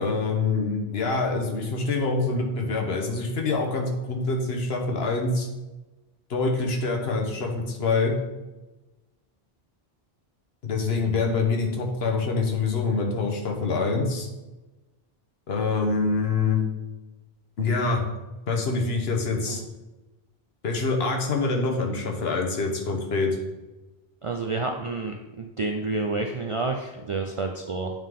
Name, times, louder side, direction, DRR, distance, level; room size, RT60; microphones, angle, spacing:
voice 1, 0.0-5.5 6.3-8.2 10.6-14.3 15.5-16.6 17.6-18.0 18.5-19.6 20.6-23.4, left 3 dB, 75° left, 1 dB, 1.2 m, -25 dB
voice 2, 24.2-27.9, right 3 dB, 55° right, 3 dB, 0.3 m, -29 dB
8.9 x 3.6 x 3.6 m, 1.1 s
omnidirectional pair, 1.1 m